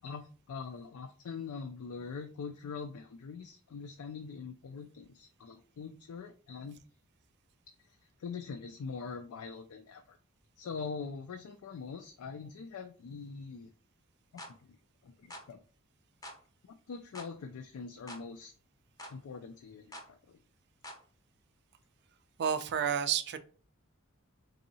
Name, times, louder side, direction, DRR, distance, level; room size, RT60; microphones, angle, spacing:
voice 1, 0.0-6.8 7.9-10.2 10.6-13.7 14.3-14.8 15.0-15.6 16.6-18.5 19.1-20.4, left 5 dB, 80° left, 7 dB, 0.4 m, -43 dB
sound 1, 14.4-14.6 15.3-15.5 16.2-16.4 17.1-17.3 18.1-18.3 19.0-19.2 19.9-20.1 20.8-21.0, left 1 dB, 15° left, 0.6 m, -46 dB
voice 2, 22.4-23.4, right 8 dB, 50° right, 10 dB, 0.4 m, -30 dB
4.0 x 2.7 x 2.7 m, 0.39 s
head